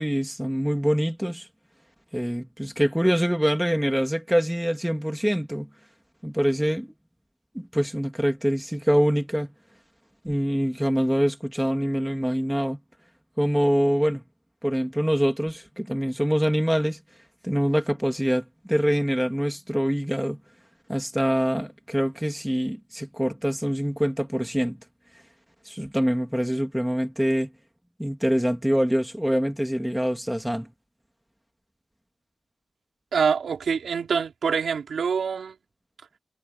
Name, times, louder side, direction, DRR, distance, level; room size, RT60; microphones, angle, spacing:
voice 1, 0.0-1.5 2.1-5.7 6.2-6.9 7.5-9.5 10.2-12.8 13.4-14.2 14.6-17.0 17.4-20.4 20.9-24.8 25.7-27.5 28.0-30.7, equal, 5° right, 2.1 m, -24 dB
voice 2, 33.1-35.5, right 6 dB, 70° right, 4.7 m, -25 dB
wide cardioid pair, 175°, 0 cm